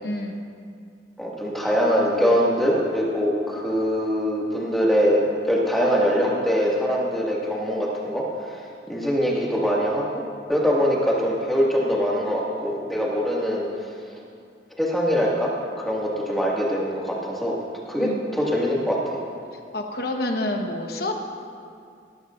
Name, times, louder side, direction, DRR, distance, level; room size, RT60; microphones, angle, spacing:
voice 1, 0.0-0.4 18.0-18.2 19.7-21.2, left 1 dB, 60° left, 2 dB, 1.2 m, -28 dB
voice 2, 1.2-10.2 10.5-13.7 14.8-17.6 17.9-19.0, equal, ahead, -5 dB, 2.0 m, -23 dB
18.0 x 15.0 x 2.6 m, 2.3 s
head